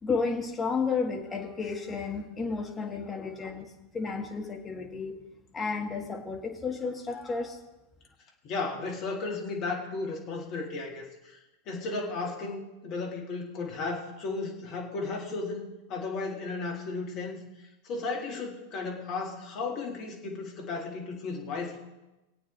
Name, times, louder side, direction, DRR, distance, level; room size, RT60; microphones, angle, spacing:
voice 1, 0.0-5.2 5.5-7.6, left 4 dB, 15° left, 2 dB, 1.6 m, -32 dB
voice 2, 8.4-11.4 11.7-17.4 17.8-21.8, left 3 dB, 40° left, 0 dB, 2.2 m, -34 dB
20.0 x 8.4 x 3.3 m, 1.0 s
figure-of-eight pair, 90°, 0 cm